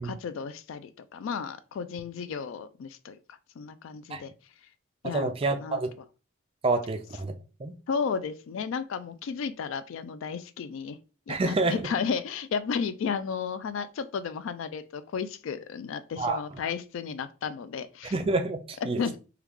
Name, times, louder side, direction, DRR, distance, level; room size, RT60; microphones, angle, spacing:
voice 1, 0.0-3.2 3.6-4.3 5.0-5.8 7.9-11.0 11.3-18.1 18.8-19.2, left 6 dB, 65° left, 0.3 m, -33 dB
voice 2, 5.1-5.9 6.6-7.3 7.6-7.8 11.3-11.8 16.2-16.4 18.1-19.0, right 3 dB, 25° right, 0.3 m, -28 dB
3.1 x 2.3 x 3.5 m
head